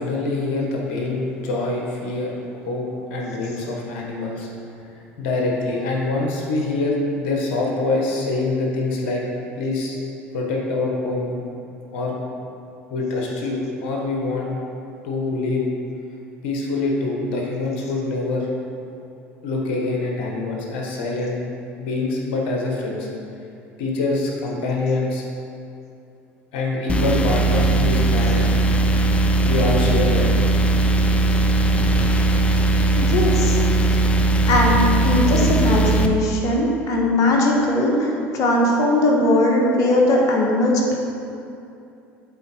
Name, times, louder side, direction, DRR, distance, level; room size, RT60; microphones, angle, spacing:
voice 1, 0.0-4.5 5.2-9.2 9.6-10.0 10.3-11.4 11.9-12.2 12.9-14.5 15.0-15.7 16.4-18.5 19.4-21.4 21.8-23.1 23.8-25.2 26.5-28.4 29.4-30.3, left 2 dB, 75° left, -1 dB, 1.4 m, -25 dB
sound 1, 26.9-36.1, right 2 dB, 15° left, 0.5 m, -18 dB
voice 2, 33.0-33.6 34.5-40.9, left 1 dB, 55° left, 0 dB, 1.3 m, -19 dB
8.0 x 4.4 x 4.5 m, 2.6 s
hypercardioid pair, 75°, 6 cm